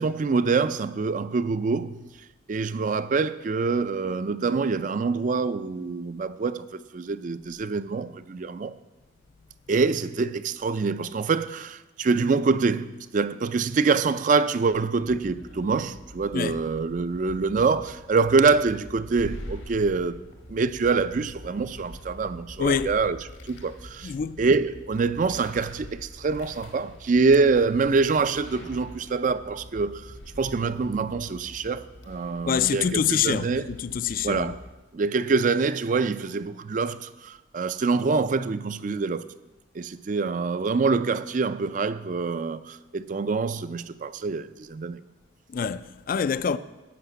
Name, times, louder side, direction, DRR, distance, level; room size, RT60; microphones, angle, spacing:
voice 1, 0.0-2.0 2.5-6.7 6.9-8.7 9.7-20.2 20.5-23.2 23.5-33.7 34.2-34.6 34.9-39.3 39.7-45.0, right 4 dB, 40° right, 0.4 m, -25 dB
sound 1, 15.0-34.7, left 1 dB, 85° left, 1.8 m, -44 dB
voice 2, 22.6-23.0 24.0-24.4 32.4-34.5 45.5-46.6, left 7 dB, 45° left, 0.3 m, -26 dB
12.0 x 5.8 x 8.1 m
head